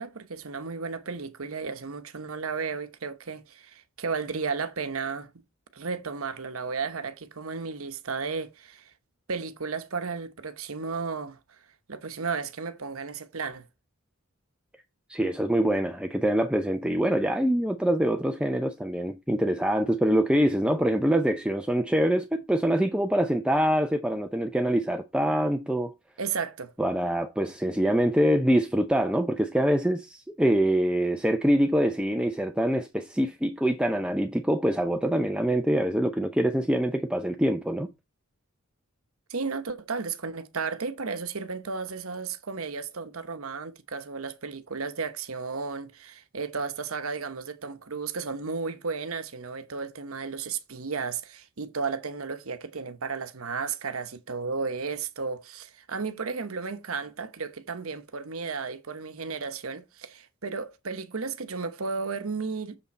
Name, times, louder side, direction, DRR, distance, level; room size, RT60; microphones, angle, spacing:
voice 1, 0.0-5.4 5.7-8.9 9.3-11.4 11.9-13.7 26.2-26.7 39.3-62.8, right 5 dB, 85° right, 1.0 m, -34 dB
voice 2, 15.1-25.9 26.8-37.9, equal, 5° right, 0.6 m, -25 dB
7.0 x 6.1 x 4.3 m
head